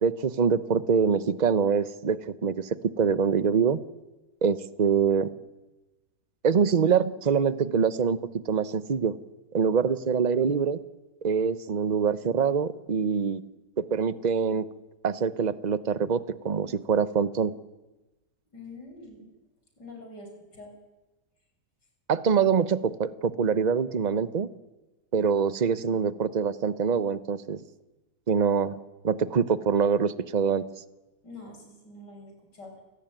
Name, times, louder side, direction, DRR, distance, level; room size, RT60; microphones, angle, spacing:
voice 1, 0.0-2.7 3.0-3.8 4.4-5.3 6.4-8.2 8.5-9.1 9.5-10.8 11.2-13.4 13.8-14.7 15.0-17.5 22.1-24.5 25.1-27.6 28.3-28.8 29.0-30.6, right 6 dB, 35° right, 14 dB, 0.8 m, -24 dB
voice 2, 18.5-19.3 19.8-20.7 31.2-32.7, left 2 dB, 85° left, 3 dB, 6.9 m, -45 dB
29.5 x 18.0 x 9.1 m, 1.1 s
omnidirectional pair, 1.8 m